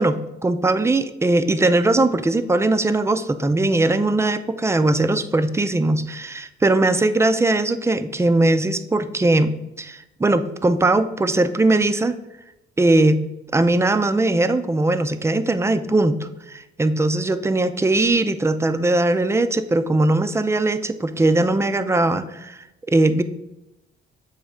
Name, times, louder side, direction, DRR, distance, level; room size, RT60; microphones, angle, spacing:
voice 1, 0.0-9.5 9.8-12.2 12.8-13.2 13.5-23.2, right 2 dB, 15° right, 10 dB, 0.4 m, -20 dB
7.0 x 3.1 x 4.9 m, 0.94 s
cardioid pair, 90°, 20 cm